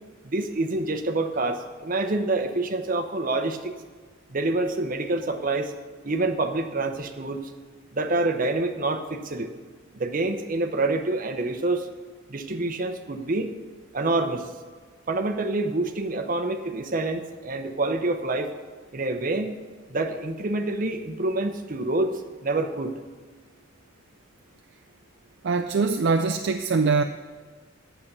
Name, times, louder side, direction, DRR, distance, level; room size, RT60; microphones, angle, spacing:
voice 1, 0.2-3.7 4.3-5.7 6.0-7.5 7.9-9.5 9.9-11.9 12.3-13.5 13.9-14.5 15.1-18.5 18.9-19.5 19.9-22.1 22.4-22.9, right 2 dB, 40° right, 7 dB, 0.8 m, -27 dB
voice 2, 25.4-27.0, right 4 dB, 55° right, 5 dB, 0.5 m, -22 dB
8.5 x 6.8 x 8.6 m, 1.4 s
head